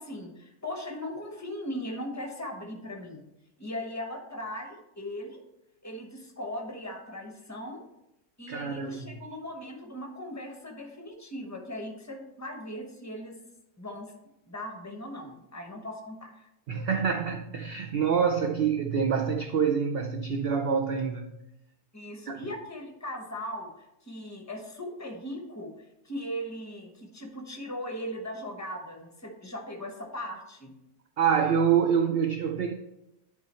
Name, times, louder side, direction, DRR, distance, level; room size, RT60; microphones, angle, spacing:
voice 1, 0.0-3.2 3.6-5.4 5.8-7.8 8.4-13.4 13.8-14.1 14.5-16.5 21.9-25.7 26.0-30.7, left 1 dB, 15° left, 2 dB, 0.9 m, -38 dB
voice 2, 8.5-9.1 16.7-21.3 22.3-22.4 31.2-32.7, right 7 dB, 70° right, 4 dB, 0.5 m, -26 dB
10.5 x 3.7 x 4.3 m, 0.88 s
omnidirectional pair, 1.6 m